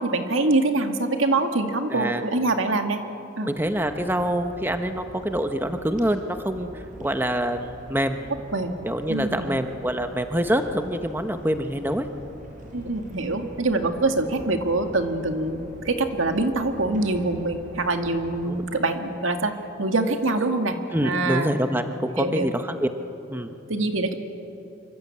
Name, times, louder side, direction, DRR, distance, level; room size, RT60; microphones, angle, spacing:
voice 1, 0.0-3.0 3.4-3.5 8.5-8.7 9.1-9.5 12.7-19.5 19.8-21.5 22.2-22.5 23.7-24.1, right 2 dB, 85° right, 6 dB, 2.1 m, -24 dB
voice 2, 1.9-2.2 3.5-8.3 8.8-12.1 18.5-18.6 20.9-22.9 23.3-23.5, equal, 10° right, 7 dB, 1.0 m, -26 dB
sound 1, 3.5-18.6, equal, 40° right, 5.2 m, -44 dB
26.5 x 24.5 x 8.6 m, 2.8 s
head